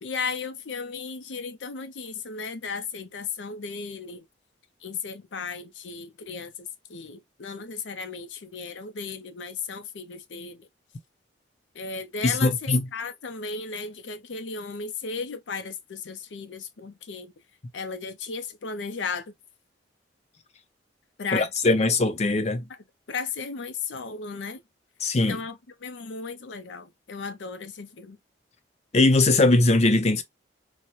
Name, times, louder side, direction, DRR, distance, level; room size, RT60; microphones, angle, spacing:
voice 1, 0.0-4.3 4.8-10.7 11.7-17.3 17.7-19.3 21.2-21.5 21.8-21.9 23.1-24.6 25.3-28.2, left 5 dB, 85° left, 0.6 m, -35 dB
voice 2, 12.2-12.8 21.3-22.6 25.0-25.4 28.9-30.2, left 2 dB, 35° left, 0.5 m, -21 dB
4.0 x 2.1 x 2.8 m
head